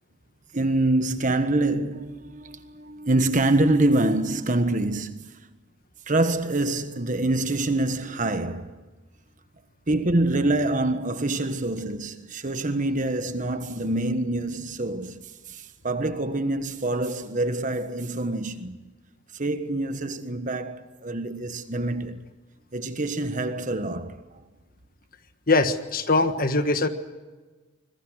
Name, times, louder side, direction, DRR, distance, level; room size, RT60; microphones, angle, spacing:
voice 1, 0.5-5.3 6.1-8.8 9.9-18.8 19.3-22.3 22.7-24.4, right 2 dB, 35° right, 1.4 m, -26 dB
voice 2, 25.5-26.9, left 3 dB, 45° left, 1.5 m, -22 dB
25.0 x 22.0 x 6.4 m
head